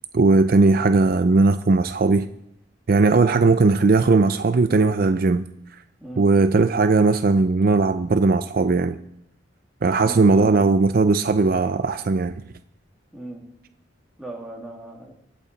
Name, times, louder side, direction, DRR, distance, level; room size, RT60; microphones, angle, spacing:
voice 1, 0.1-2.3 2.9-5.4 6.2-9.0 9.8-12.4, right 3 dB, 50° right, 10 dB, 0.5 m, -18 dB
voice 2, 10.0-10.5 13.1-13.4 14.2-15.1, right 2 dB, 5° right, -2 dB, 2.4 m, -37 dB
24.0 x 8.3 x 4.0 m, 0.83 s
head